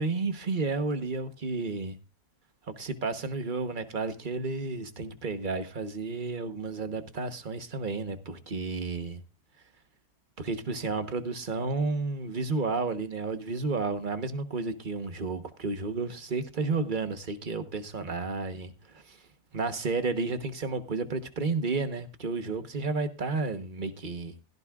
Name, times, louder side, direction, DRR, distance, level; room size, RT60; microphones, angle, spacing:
voice 1, 0.0-1.9 2.8-9.2 10.4-18.7 19.1-19.2 19.5-24.3, right 3 dB, 35° right, 1.2 m, -31 dB
16.5 x 14.0 x 2.4 m
omnidirectional pair, 1.7 m